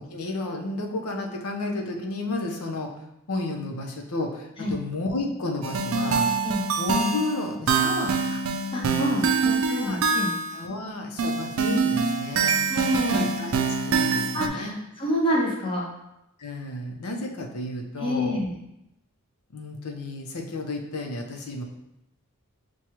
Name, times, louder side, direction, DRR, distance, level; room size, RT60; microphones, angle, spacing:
voice 1, 0.0-2.9 3.3-6.3 6.8-8.4 9.4-10.0 10.5-12.6 13.1-14.8 16.4-18.4 19.5-21.6, left 2 dB, 90° left, 2 dB, 0.7 m, -32 dB
sound 1, 5.6-10.6 11.2-14.5, right 4 dB, 65° right, 0.4 m, -25 dB
voice 2, 8.7-10.3 12.7-13.2 14.3-14.7 15.0-15.9 18.0-18.5, equal, 25° left, -4 dB, 0.7 m, -27 dB
6.1 x 2.3 x 2.9 m, 0.86 s
head